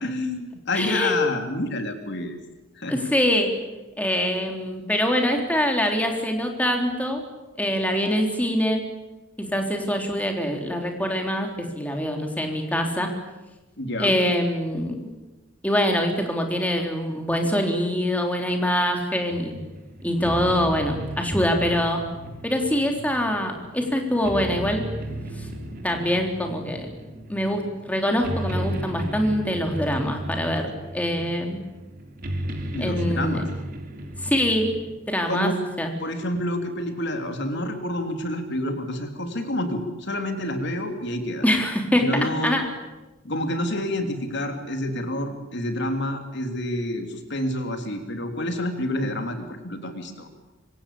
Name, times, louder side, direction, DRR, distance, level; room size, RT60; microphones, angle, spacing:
voice 1, 0.0-2.4 2.7-3.0 13.8-14.2 32.7-33.5 35.3-35.5 36.0-41.4 42.0-42.6 43.2-50.3, left 1 dB, 60° left, 6 dB, 3.4 m, -28 dB
voice 2, 0.7-1.2 2.9-3.5 4.0-7.2 7.6-8.8 9.4-13.1 14.0-15.1 15.6-19.6 20.0-22.0 22.4-24.8 25.4-25.5 25.8-26.9 27.3-31.6 32.8-33.4 34.2-34.7 35.1-35.5 35.8-35.9 41.4-42.7, equal, 10° left, 3 dB, 3.8 m, -24 dB
sound 1, 19.3-34.9, right 1 dB, 45° right, 4.2 m, -34 dB
26.0 x 24.5 x 8.8 m, 1.1 s
head